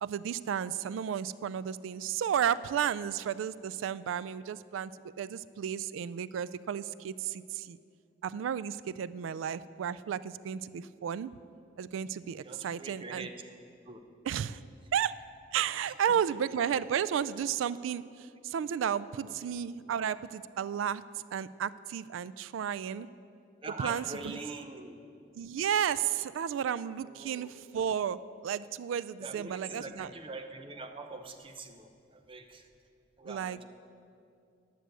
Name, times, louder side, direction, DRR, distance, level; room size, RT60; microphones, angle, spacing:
voice 1, 0.0-4.9 5.2-7.8 8.2-11.3 11.8-13.3 14.2-14.6 14.9-15.2 15.5-21.0 21.3-23.1 23.8-24.4 25.3-30.1 33.2-33.6, right 8 dB, 90° right, 17 dB, 0.3 m, -33 dB
voice 2, 12.4-13.5 13.9-14.0 15.9-16.0 23.6-25.0 27.0-27.5 29.2-32.6 33.2-33.6, right 3 dB, 30° right, 6 dB, 0.6 m, -43 dB
10.0 x 6.2 x 7.9 m, 2.5 s
head